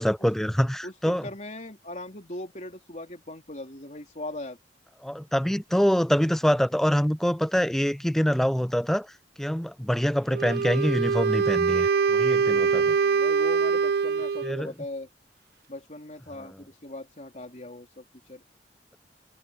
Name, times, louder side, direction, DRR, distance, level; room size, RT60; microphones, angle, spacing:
voice 1, 0.0-1.2 5.0-9.1 9.4-13.0 14.4-14.7, equal, ahead, 0.4 m, -25 dB
voice 2, 0.8-4.6 12.4-15.1 15.7-18.4, left 1 dB, 40° left, 3.5 m, -40 dB
Wind instrument woodwind instrument, 10.3-14.7, right 5 dB, 60° right, 0.8 m, -24 dB
head